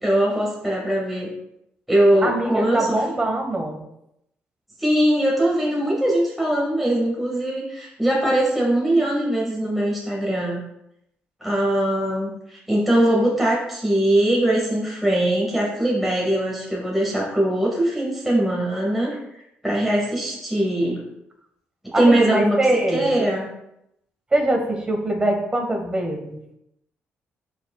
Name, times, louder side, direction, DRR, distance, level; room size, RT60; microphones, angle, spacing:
voice 1, 0.0-1.3 1.9-3.0 4.8-10.6 11.4-19.2 19.6-21.0 22.0-22.6 22.9-23.5, right 1 dB, 5° right, -4 dB, 1.9 m, -21 dB
voice 2, 2.2-3.8 21.9-23.1 24.3-26.4, right 1 dB, 20° right, 3 dB, 1.5 m, -23 dB
12.5 x 4.9 x 2.4 m, 0.81 s
cardioid pair, 130°, 5 cm